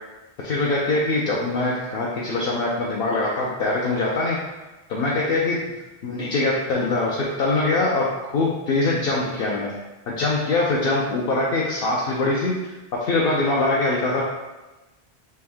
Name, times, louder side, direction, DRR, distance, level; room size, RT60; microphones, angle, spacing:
voice 1, 0.4-4.4 4.9-5.6 6.0-8.1 8.3-9.7 10.1-12.6 13.0-14.2, left 2 dB, 70° left, -4 dB, 0.8 m, -23 dB
3.4 x 2.6 x 3.4 m, 1.1 s
omnidirectional pair, 1.1 m